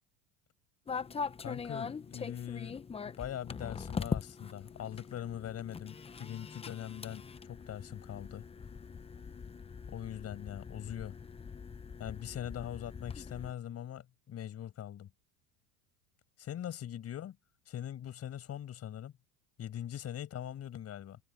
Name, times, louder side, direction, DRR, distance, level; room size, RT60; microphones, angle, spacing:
sound 1, 0.9-13.5, left 5 dB, 15° left, 0.9 m, -42 dB
voice 1, 1.4-8.4 9.9-11.1 12.0-15.1 16.5-17.4 17.7-19.1 19.6-21.2, left 10 dB, 35° left, 6.7 m, -42 dB
supercardioid pair, 120°, 41 cm